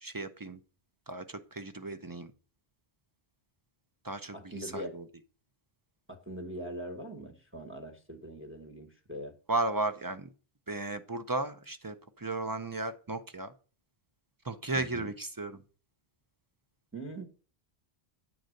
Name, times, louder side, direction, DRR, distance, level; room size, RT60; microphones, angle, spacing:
voice 1, 0.0-0.6 1.1-2.3 4.0-5.1 9.5-10.3 10.7-13.5 14.4-15.6, right 2 dB, 30° right, 9 dB, 0.4 m, -35 dB
voice 2, 4.3-5.0 6.1-9.3 14.7-15.1 16.9-17.2, right 1 dB, 10° right, 3 dB, 1.0 m, -42 dB
9.2 x 3.9 x 6.4 m, 0.38 s
omnidirectional pair, 1.1 m